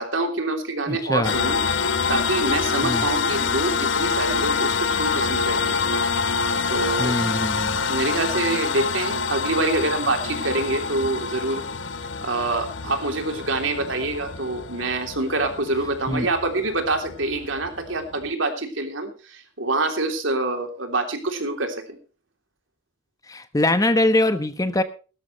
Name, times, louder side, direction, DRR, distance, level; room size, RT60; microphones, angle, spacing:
voice 1, 0.0-5.8 6.7-7.2 7.9-11.6 12.2-22.0, right 2 dB, 90° right, 5 dB, 3.1 m, -26 dB
voice 2, 0.9-1.3 2.8-3.1 7.0-7.8 16.1-16.3 23.3-24.8, left 1 dB, 20° left, 11 dB, 1.0 m, -22 dB
sound 1, 1.2-18.3, left 5 dB, 75° left, 1.0 m, -26 dB
17.5 x 13.0 x 3.2 m, 0.35 s
head